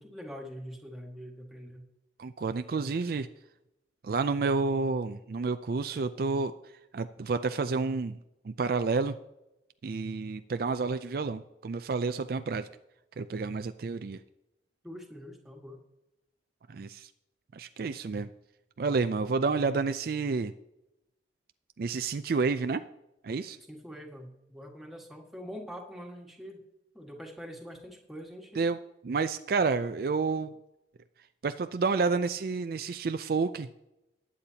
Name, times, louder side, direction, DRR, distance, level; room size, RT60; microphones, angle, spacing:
voice 1, 0.0-1.8 14.8-15.8 23.7-26.6 26.9-28.7, equal, ahead, -1 dB, 1.7 m, -44 dB
voice 2, 2.2-3.3 4.0-6.5 6.9-9.2 9.8-12.7 13.2-14.2 16.7-17.1 17.5-18.3 18.8-20.5 21.8-22.8 23.2-23.6 28.6-28.8 29.0-30.5 31.4-33.7, right 4 dB, 55° right, 10 dB, 0.4 m, -30 dB
20.0 x 8.5 x 2.9 m, 0.90 s
head